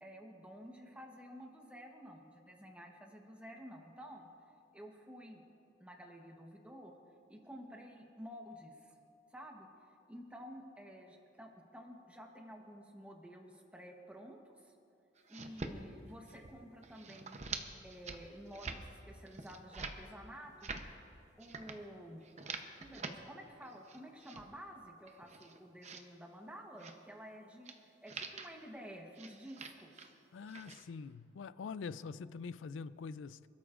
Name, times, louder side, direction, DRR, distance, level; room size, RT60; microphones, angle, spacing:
voice 1, 0.0-4.3 4.7-5.4 5.8-6.9 7.3-8.9 9.3-9.7 10.1-14.7 15.3-17.4 17.8-20.7 21.4-22.3 22.8-30.1, equal, 5° right, 1.0 m, -51 dB
sound 1, 15.2-15.7 16.1-16.5 16.8-17.6 17.9-18.2 18.5-18.8 19.3-20.0 20.4-20.8 21.4-21.8 22.2-23.1 23.6-24.4 25.0-26.0 26.7-27.0 27.6-27.8 28.1-28.5 29.1-30.1 30.4-30.8, right 4 dB, 35° right, 0.8 m, -46 dB
voice 2, 30.3-33.5, left 5 dB, 75° left, 0.4 m, -44 dB
26.5 x 12.5 x 2.5 m
head